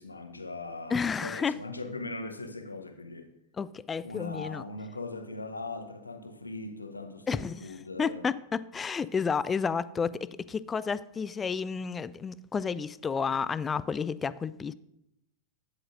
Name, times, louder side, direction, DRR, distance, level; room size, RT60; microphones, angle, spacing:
voice 1, 0.0-3.3 4.0-8.3, left 3 dB, 80° left, 0.9 m, -40 dB
voice 2, 0.9-1.5 3.6-4.6 7.3-14.7, left 5 dB, 20° left, 0.3 m, -31 dB
11.5 x 9.7 x 2.6 m
figure-of-eight pair, 90°, 0 cm